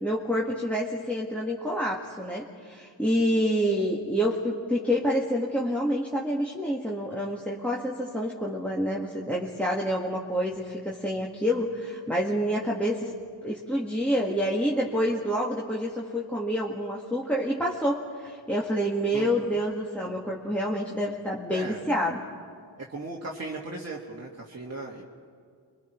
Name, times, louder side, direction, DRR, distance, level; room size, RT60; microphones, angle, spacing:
voice 1, 0.0-13.1 13.4-22.2, equal, 5° left, -3 dB, 2.0 m, -28 dB
voice 2, 21.5-21.8 22.8-25.0, right 2 dB, 30° right, -2 dB, 2.0 m, -37 dB
28.0 x 23.5 x 4.6 m, 2.1 s
cardioid pair, 90°, 47 cm